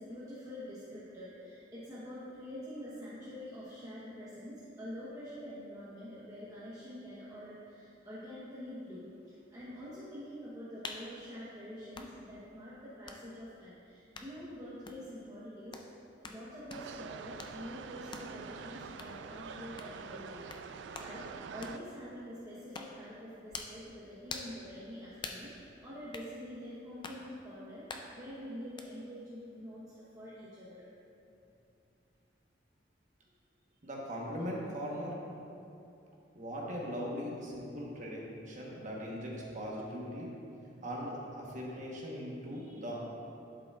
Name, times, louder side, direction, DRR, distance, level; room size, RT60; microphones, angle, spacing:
voice 1, 0.0-15.8 16.2-21.2 21.5-27.8 28.1-30.9, equal, 20° right, -11 dB, 1.0 m, -46 dB
sound 1, 10.8-11.1 11.9-12.1 13.1-13.2 14.1-14.3 14.9-15.0 15.7-15.9 16.2-16.4 16.7-16.9 17.4-17.6 18.1-18.3 19.0-19.1 19.8-20.0 20.5-20.6 20.9-21.1 21.6-21.8 22.7-23.0 23.5-23.8 24.3-24.6 25.2-25.5 26.1-26.3 27.0-27.2 27.9-28.1 28.8-28.9, left 4 dB, 25° left, 0.4 m, -44 dB
sound 2, 16.7-21.8, right 6 dB, 65° right, 0.3 m, -46 dB
voice 2, 33.8-35.3 36.3-40.3 40.8-43.0, equal, 40° right, -3 dB, 1.1 m, -40 dB
11.5 x 4.9 x 2.4 m, 2.7 s
head